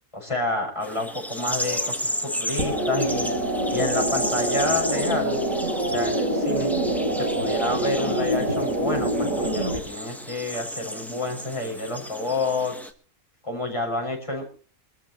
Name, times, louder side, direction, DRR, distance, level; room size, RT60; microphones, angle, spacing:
voice 1, 0.1-3.3 3.7-5.4 5.9-6.7 7.1-12.7 13.4-14.4, left 2 dB, 20° left, 0 dB, 6.1 m, -29 dB
sound 1, 0.8-12.9, equal, ahead, 1.1 m, -33 dB
sound 2, 2.6-9.8, right 1 dB, 65° right, 3.8 m, -25 dB
25.5 x 13.5 x 3.0 m, 0.42 s
omnidirectional pair, 1.5 m